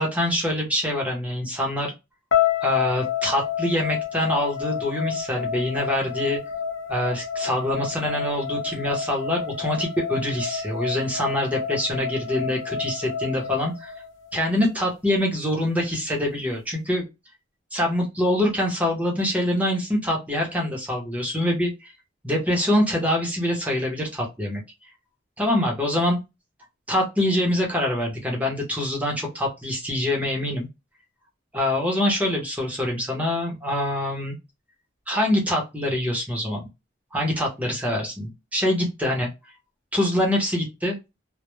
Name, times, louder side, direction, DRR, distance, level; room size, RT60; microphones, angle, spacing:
voice 1, 0.0-1.9 2.6-6.4 6.9-13.9 14.3-17.0 17.7-21.9 22.2-24.6 25.4-26.2 26.9-30.7 31.5-34.3 35.1-36.6 37.1-39.3 39.9-41.0, left 1 dB, 5° right, -1 dB, 0.6 m, -25 dB
sound 1, 2.3-14.4, left 7 dB, 70° left, 0.6 m, -29 dB
2.1 x 2.0 x 3.0 m, 0.23 s
head